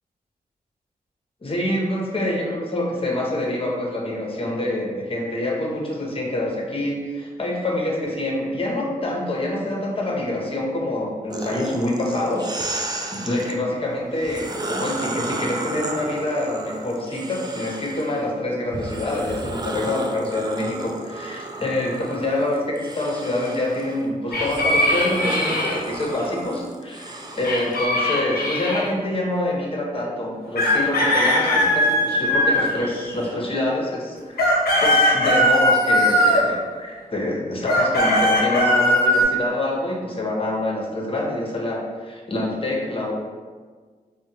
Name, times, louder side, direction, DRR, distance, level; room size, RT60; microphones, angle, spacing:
voice 1, 1.4-12.5 13.1-34.4 34.8-43.1, left 1 dB, 35° left, -2 dB, 0.8 m, -26 dB
sound 1, 11.3-13.6 14.1-18.2 18.7-27.9, right 2 dB, 25° right, 0.4 m, -33 dB
sound 2, 24.3-25.8 27.4-28.9 30.5-33.3 34.1-36.5 37.6-39.2, left 1 dB, 75° left, 0.6 m, -19 dB
3.5 x 2.1 x 2.7 m, 1.5 s
cardioid pair, 40°, 16 cm